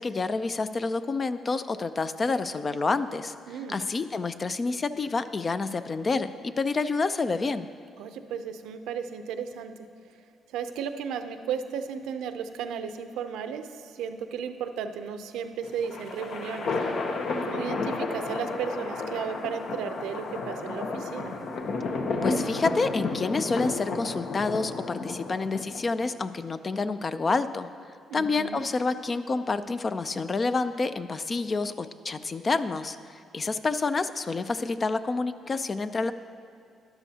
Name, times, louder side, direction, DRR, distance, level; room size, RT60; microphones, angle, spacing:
voice 1, 0.0-3.3 3.7-7.7 22.2-27.7 28.1-36.1, left 3 dB, 35° left, 12 dB, 0.4 m, -28 dB
voice 2, 3.5-3.8 8.0-9.7 10.5-16.7 17.5-21.4 28.1-28.6, right 7 dB, 90° right, 8 dB, 0.6 m, -34 dB
sound 1, 15.6-26.1, left 3 dB, 60° left, 0.8 m, -32 dB
12.5 x 11.5 x 2.8 m, 2.5 s
cardioid pair, 90°, 0 cm